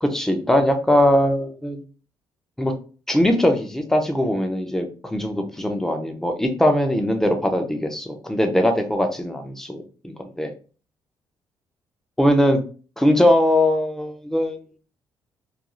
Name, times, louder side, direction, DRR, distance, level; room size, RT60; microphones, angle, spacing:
voice 1, 0.0-1.8 2.6-2.7 3.1-10.5 12.2-12.6 13.0-14.6, left 1 dB, 5° left, 5 dB, 0.4 m, -21 dB
2.4 x 2.3 x 2.9 m, 0.38 s
cardioid pair, 120°, 8 cm